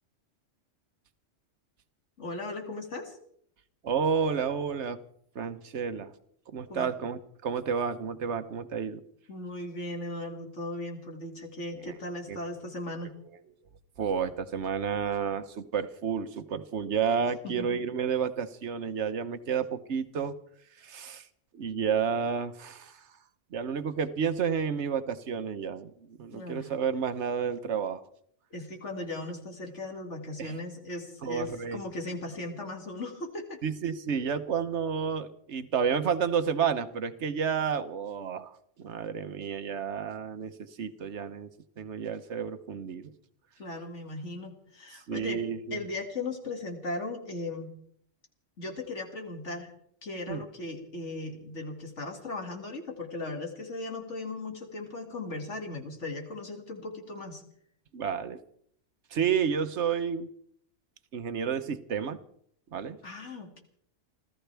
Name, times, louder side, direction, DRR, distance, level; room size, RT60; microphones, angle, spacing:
voice 1, 2.2-3.2 6.7-6.9 9.3-13.2 17.4-17.8 26.3-26.7 28.5-33.6 43.6-45.4 45.7-47.7 48.6-49.7 50.0-57.4 63.0-63.6, left 2 dB, 75° left, 3 dB, 2.6 m, -37 dB
voice 2, 3.8-5.0 5.3-6.1 6.5-9.0 11.8-11.9 12.3-12.4 14.0-20.3 20.8-21.3 21.5-23.0 23.5-28.0 30.4-30.6 31.2-31.8 33.6-41.5 41.8-43.1 45.1-45.8 50.3-50.4 57.9-58.4 59.1-60.3 61.1-62.2 62.7-63.0, right 6 dB, 70° right, 11 dB, 1.2 m, -31 dB
29.5 x 13.5 x 3.4 m, 0.66 s
omnidirectional pair, 1.2 m